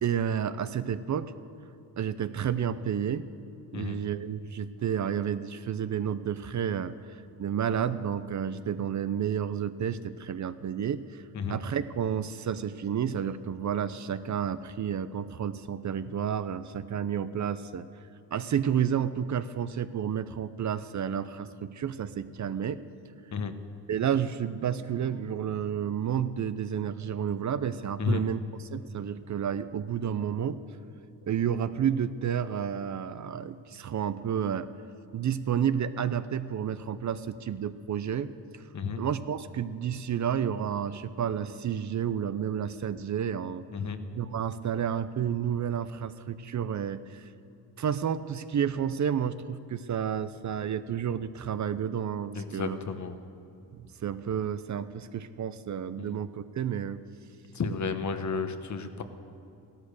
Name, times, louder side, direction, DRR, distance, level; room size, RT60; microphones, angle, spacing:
voice 1, 0.0-1.3 2.0-3.3 3.7-11.2 11.5-17.9 18.3-22.8 23.6-30.6 31.2-34.7 35.1-38.7 38.9-43.6 44.1-47.3 47.8-52.8 53.7-57.0, right 8 dB, 45° right, 13 dB, 0.6 m, -31 dB
voice 2, 52.3-53.2 56.0-56.2 57.5-59.0, left 5 dB, 45° left, 9 dB, 1.1 m, -32 dB
15.0 x 13.5 x 6.6 m, 2.7 s
cardioid pair, 100°, 39 cm